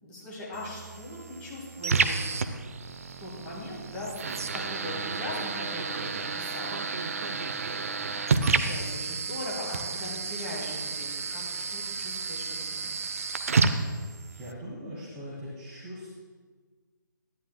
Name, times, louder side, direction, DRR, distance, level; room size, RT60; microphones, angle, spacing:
voice 1, 0.0-2.6 3.2-13.0, left 2 dB, 15° left, -6 dB, 1.9 m, -40 dB
sound 1, 0.5-14.5, right 4 dB, 45° right, 0.5 m, -31 dB
voice 2, 14.3-16.1, equal, 10° right, -9 dB, 1.3 m, -41 dB
11.0 x 11.0 x 2.2 m, 1.5 s
figure-of-eight pair, 145°, 11 cm